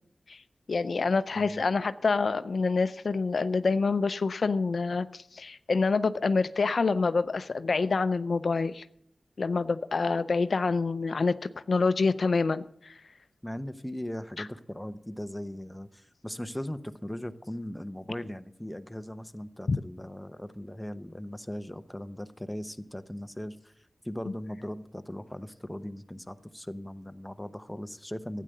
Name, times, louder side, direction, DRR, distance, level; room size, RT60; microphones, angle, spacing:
voice 1, 0.7-8.8 9.4-11.4 11.7-13.0 14.4-14.5 19.7-19.8, left 4 dB, 75° left, 13 dB, 0.5 m, -27 dB
voice 2, 13.4-23.7 24.0-28.4, left 1 dB, 10° left, 10 dB, 0.9 m, -39 dB
12.0 x 9.3 x 6.6 m, 0.71 s
cardioid pair, 45°, 0 cm